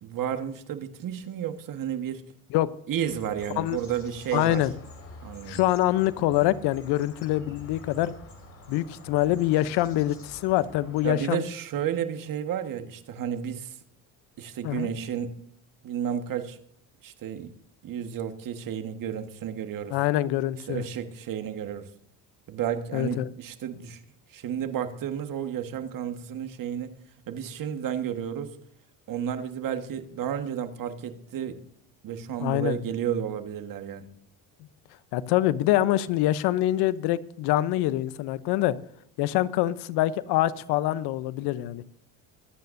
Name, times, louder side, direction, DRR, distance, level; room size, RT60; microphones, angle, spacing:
voice 1, 0.0-2.2 2.9-4.6 5.2-5.6 11.0-13.8 14.4-15.4 15.8-16.6 17.0-17.5 17.8-20.0 20.7-21.9 22.5-24.0 24.3-26.9 27.3-28.6 29.1-31.6 32.0-34.1, right 9 dB, 50° right, 8 dB, 1.6 m, -32 dB
sound 1, 3.0-11.2, left 2 dB, 35° left, 5.1 m, -47 dB
voice 2, 4.3-4.7 5.5-8.1 8.7-11.4 14.6-14.9 19.9-20.8 22.9-23.3 32.4-32.8 35.1-38.8 39.2-41.8, left 14 dB, 70° left, 16 dB, 0.9 m, -25 dB
24.0 x 9.3 x 2.7 m, 0.70 s
supercardioid pair, 95°, 42 cm